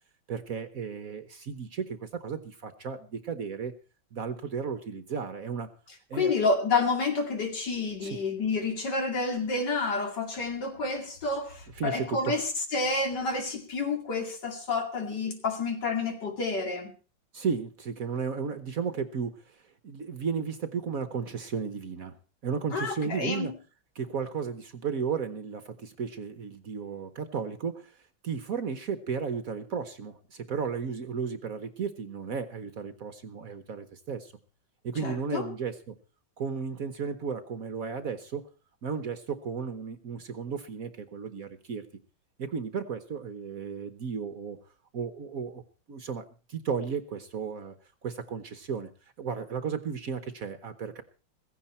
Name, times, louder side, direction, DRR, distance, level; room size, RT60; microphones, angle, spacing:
voice 1, 0.3-3.7 4.1-5.7 6.1-6.3 8.0-8.2 11.7-12.3 17.3-22.2 22.4-23.5 23.9-28.0 28.2-34.3 34.8-35.9 36.4-38.4 38.8-41.8 42.4-44.6 44.9-45.6 45.9-47.7 48.0-48.9 49.2-51.0, right 6 dB, 55° right, 11 dB, 1.2 m, -34 dB
voice 2, 6.1-16.9 22.7-23.5 35.0-35.4, left 3 dB, 60° left, 4 dB, 3.0 m, -29 dB
16.0 x 15.5 x 4.3 m, 0.36 s
omnidirectional pair, 2.1 m